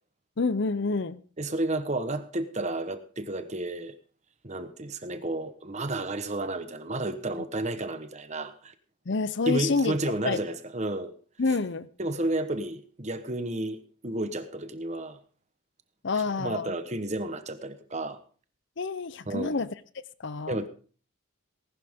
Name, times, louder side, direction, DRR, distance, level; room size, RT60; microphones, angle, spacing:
voice 1, 0.4-1.2 9.1-9.9 10.2-10.4 11.4-11.9 16.0-16.7 18.8-19.7 20.2-20.6, left 4 dB, 55° left, 0.7 m, -28 dB
voice 2, 1.4-3.9 4.4-8.7 9.5-11.1 12.0-15.2 16.4-18.2 19.3-19.6 20.5-20.7, right 2 dB, 35° right, 1.1 m, -32 dB
19.0 x 11.5 x 3.6 m
head